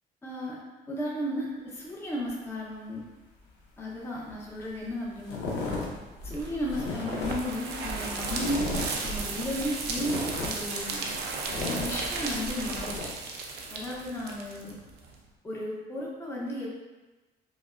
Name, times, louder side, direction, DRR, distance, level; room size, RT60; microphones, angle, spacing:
voice 1, 0.2-0.6 0.9-3.0 3.8-5.5 6.2-8.7 9.0-11.1 11.8-13.1 13.7-14.8 15.4-16.7, equal, 15° left, -5 dB, 0.6 m, -34 dB
sound 1, 4.3-4.4 4.6-4.9 5.2-13.1, left 2 dB, 85° left, 0.8 m, -35 dB
sound 2, 6.3-15.2, right 3 dB, 75° right, 0.6 m, -35 dB
5.0 x 2.1 x 2.4 m, 1.2 s
cardioid pair, 110°, 17 cm